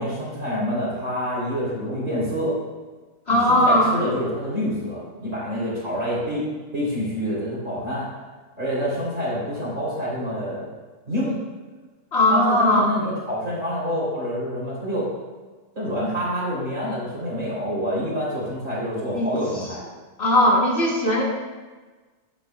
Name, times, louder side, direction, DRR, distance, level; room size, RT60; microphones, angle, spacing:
voice 1, 0.0-2.6 3.3-6.5 6.7-8.1 8.6-10.7 11.1-11.4 12.3-15.1 15.8-19.8, equal, 55° right, -9 dB, 3.5 m, -27 dB
voice 2, 3.3-3.9 12.1-12.9 19.1-19.3 20.2-21.2, left 1 dB, 45° left, -4 dB, 2.0 m, -18 dB
17.5 x 5.9 x 2.2 m, 1.3 s
omnidirectional pair, 1.6 m